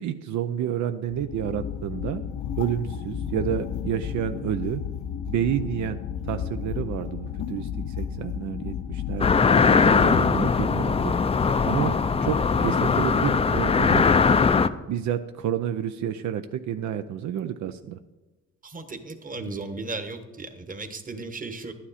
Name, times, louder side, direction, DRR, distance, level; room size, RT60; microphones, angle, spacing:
voice 1, 0.0-2.2 2.6-4.8 5.3-14.1 14.9-18.0 19.3-19.5, right 10 dB, 70° right, 9 dB, 0.5 m, -30 dB
sound 1, 1.1-10.2, left 8 dB, 70° left, 0.7 m, -33 dB
sound 2, 9.2-14.7, left 5 dB, 20° left, 0.4 m, -20 dB
voice 2, 18.6-21.7, right 3 dB, 25° right, 7 dB, 1.2 m, -35 dB
11.5 x 9.7 x 4.2 m, 1.2 s
cardioid pair, 90°, 30 cm